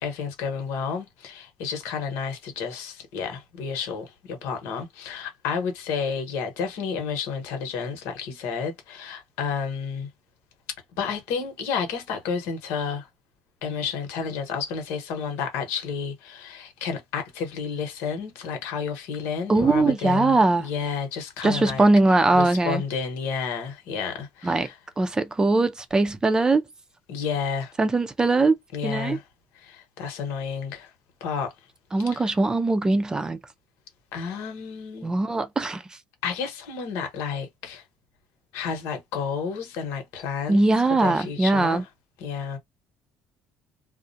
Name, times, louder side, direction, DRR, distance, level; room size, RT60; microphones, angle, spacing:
voice 1, 0.0-10.1 11.0-13.1 13.6-24.8 27.1-27.7 28.7-29.2 29.6-30.9 31.2-31.5 32.0-32.3 34.1-35.1 36.2-37.8 38.5-40.7 41.0-41.9 42.2-42.6, left 6 dB, 85° left, 1.0 m, -31 dB
voice 2, 19.5-20.7 21.4-22.8 24.4-24.7 25.0-26.6 27.8-28.6 28.8-29.2 31.9-33.4 35.0-35.8 40.5-41.8, right 2 dB, 15° right, 0.5 m, -21 dB
2.4 x 2.1 x 2.6 m
cardioid pair, 110°, 4 cm